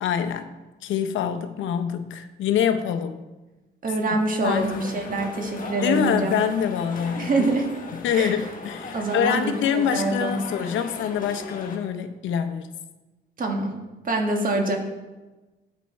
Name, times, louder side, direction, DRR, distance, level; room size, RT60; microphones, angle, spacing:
voice 1, 0.0-0.5 0.8-3.2 4.1-4.6 5.8-7.5 8.0-12.7, left 8 dB, 75° left, 9 dB, 0.7 m, -25 dB
voice 2, 3.8-6.3 7.2-7.6 8.1-8.3 8.9-10.4 13.4-13.7 14.0-14.8, right 2 dB, 45° right, 3 dB, 1.4 m, -25 dB
sound 1, 4.4-11.8, left 3 dB, 40° left, 1.2 m, -38 dB
8.0 x 5.3 x 4.4 m, 1.1 s
cardioid pair, 90°, 20 cm